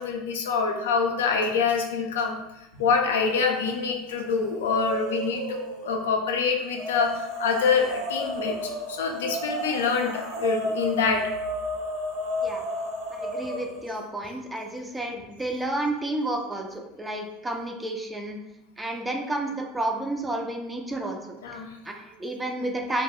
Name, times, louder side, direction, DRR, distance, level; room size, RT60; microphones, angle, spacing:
voice 1, 0.0-2.4 2.7-11.3 21.4-21.7, left 5 dB, 80° left, 3 dB, 0.4 m, -26 dB
sound 1, 3.2-3.8 4.1-5.9 6.7-13.9, equal, 55° right, 0.6 m, -33 dB
voice 2, 13.1-18.4 18.8-21.2 21.8-23.0, right 1 dB, 10° right, 2 dB, 0.4 m, -31 dB
2.3 x 2.1 x 3.4 m, 0.91 s
hypercardioid pair, 85°, 0 cm